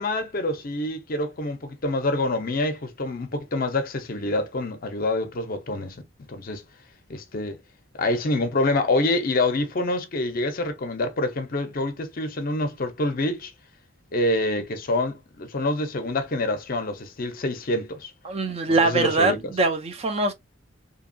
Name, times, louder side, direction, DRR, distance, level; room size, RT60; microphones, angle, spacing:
voice 1, 0.0-6.0 6.3-6.6 7.1-7.6 8.0-13.5 14.1-18.1 18.7-19.5, left 2 dB, 45° left, 0.5 m, -26 dB
voice 2, 18.2-20.3, right 3 dB, 30° right, 0.4 m, -22 dB
2.8 x 2.2 x 2.5 m
head